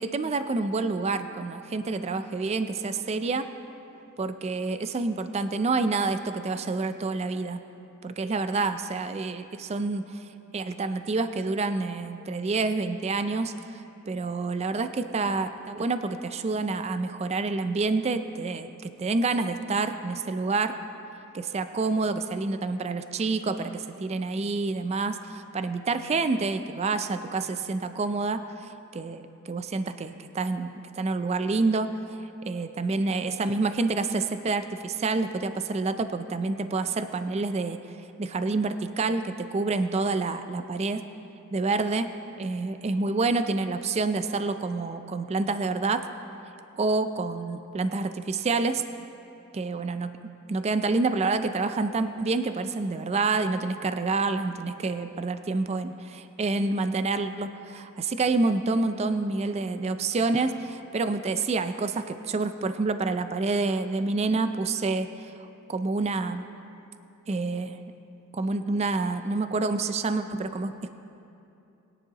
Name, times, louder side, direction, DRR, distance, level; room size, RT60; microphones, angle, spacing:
voice 1, 0.0-3.5 4.2-7.6 8.0-10.3 10.5-20.8 21.3-37.8 38.2-41.0 41.5-42.1 42.4-46.1 46.8-48.8 49.5-50.1 50.5-66.4 67.3-67.8 68.3-70.9, right 3 dB, 30° right, 10 dB, 0.3 m, -28 dB
21.5 x 10.0 x 2.9 m, 2.8 s
head